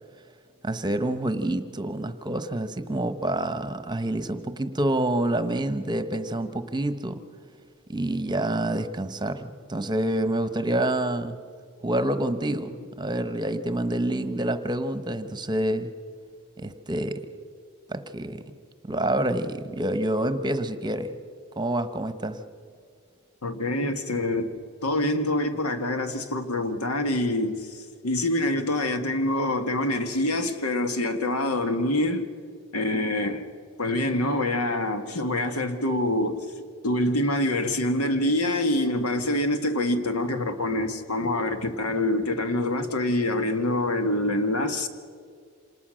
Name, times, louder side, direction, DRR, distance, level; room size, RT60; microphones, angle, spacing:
voice 1, 0.6-7.2 7.9-11.4 11.8-15.9 16.6-17.3 17.9-18.4 18.8-21.1 21.6-22.4, right 1 dB, 20° right, 1.0 m, -27 dB
voice 2, 23.4-24.5 24.8-32.3 32.7-33.4 33.8-36.4 36.8-44.9, left 1 dB, 80° left, 1.7 m, -25 dB
27.0 x 19.5 x 6.4 m
head